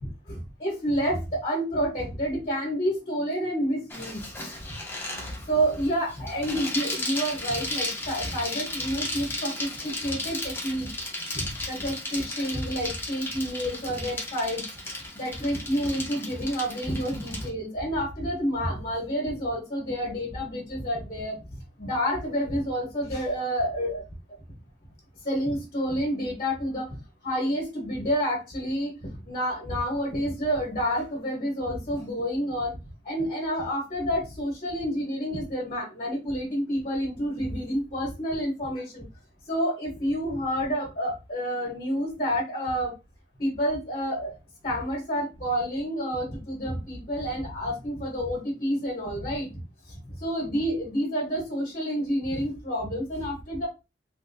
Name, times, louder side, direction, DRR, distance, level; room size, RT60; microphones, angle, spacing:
voice 1, 0.0-4.2 5.5-10.9 11.3-14.7 15.1-21.4 21.8-24.0 25.2-27.0 27.2-32.8 33.0-39.0 39.5-42.9 43.4-44.4 44.6-49.6 49.9-53.7, equal, 40° left, -2 dB, 1.3 m, -29 dB
Bicycle, 3.9-17.5, left 2 dB, 15° left, 0.9 m, -35 dB
3.4 x 2.7 x 2.7 m, 0.27 s
head